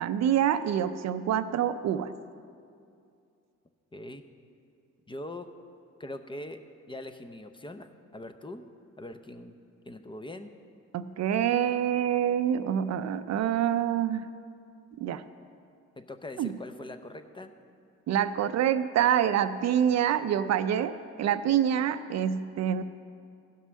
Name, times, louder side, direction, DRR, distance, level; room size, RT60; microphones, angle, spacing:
voice 1, 0.0-2.1 10.9-14.3 15.0-15.2 16.4-16.5 18.1-22.8, right 9 dB, 60° right, 12 dB, 0.5 m, -26 dB
voice 2, 3.9-4.2 5.1-5.5 6.0-6.6 6.9-8.7 9.0-9.6 9.9-10.5 16.0-17.5, left 1 dB, 15° left, 8 dB, 0.6 m, -42 dB
14.5 x 5.5 x 6.3 m, 2.4 s
cardioid pair, 90°, 30 cm